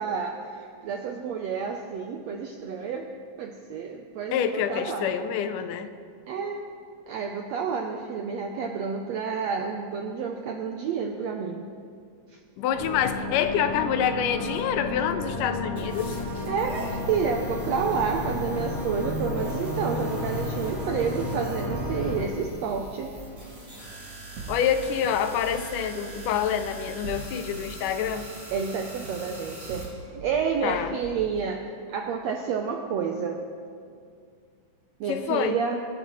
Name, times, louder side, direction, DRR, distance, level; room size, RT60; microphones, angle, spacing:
voice 1, 0.0-3.1 3.4-5.1 6.3-6.6 7.1-11.7 12.3-12.4 16.5-23.1 28.5-29.9 30.1-31.6 31.9-33.4 35.0-35.8, right 6 dB, 85° right, 3 dB, 1.5 m, -30 dB
voice 2, 4.3-5.9 12.6-16.2 24.5-28.3 30.6-30.9 35.1-35.6, left 8 dB, 80° left, 10 dB, 2.1 m, -27 dB
sound 1, 12.7-22.3, left 2 dB, 45° left, 4.1 m, -32 dB
sound 2, 15.8-29.9, right 1 dB, 30° right, 4.7 m, -42 dB
sound 3, 21.7-23.2 24.4-25.7 26.9-27.7 28.0-30.4 30.7-31.4, right 4 dB, 60° right, 1.6 m, -42 dB
24.5 x 9.7 x 3.1 m, 2.2 s
omnidirectional pair, 3.8 m